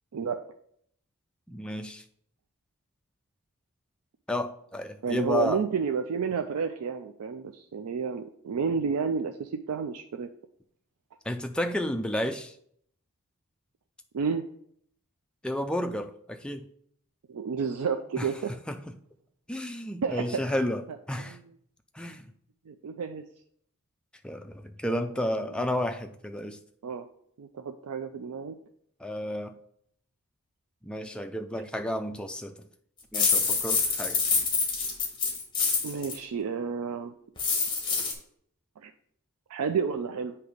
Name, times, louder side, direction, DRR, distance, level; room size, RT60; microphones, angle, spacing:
voice 1, 1.5-2.0 4.3-5.6 11.3-12.5 15.4-16.6 18.2-18.3 18.7-18.8 19.5-21.4 21.9-22.3 24.2-26.6 29.0-29.6 30.8-32.6 33.1-34.2, left 1 dB, 5° left, 0.3 m, -32 dB
voice 2, 5.0-10.3 14.1-14.4 17.3-18.5 20.0-20.4 21.2-21.4 22.7-23.2 24.8-25.7 26.8-27.0 27.4-28.5 35.8-37.1 38.8-38.9 39.5-40.4, right 6 dB, 85° right, 0.4 m, -31 dB
sound 1, 33.1-36.2 37.4-38.1, left 4 dB, 20° left, 1.1 m, -26 dB
7.9 x 2.9 x 5.0 m
head